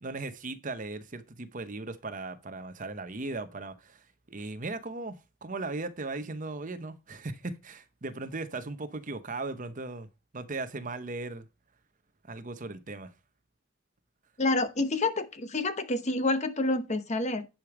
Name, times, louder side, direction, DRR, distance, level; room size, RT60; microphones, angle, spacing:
voice 1, 0.0-10.1 10.3-11.5 12.3-13.1, right 3 dB, 40° right, 0.8 m, -37 dB
voice 2, 14.4-17.5, left 2 dB, 30° left, 0.9 m, -28 dB
10.5 x 5.0 x 4.8 m
head